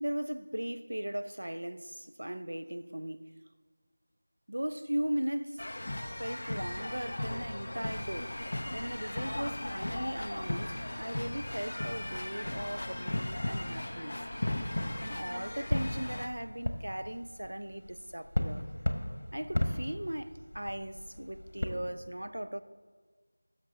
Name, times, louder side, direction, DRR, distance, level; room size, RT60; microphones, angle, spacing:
voice 1, 0.0-3.3 4.5-5.6 6.2-8.4 8.7-14.2 15.0-18.7 19.3-22.6, right 1 dB, 85° right, 0.6 m, -38 dB
sound 1, 5.6-16.3, left 1 dB, 35° left, 0.5 m, -37 dB
sound 2, 6.7-21.7, left 1 dB, 65° left, 1.3 m, -39 dB
17.0 x 6.7 x 3.9 m
figure-of-eight pair, 180°, 0 cm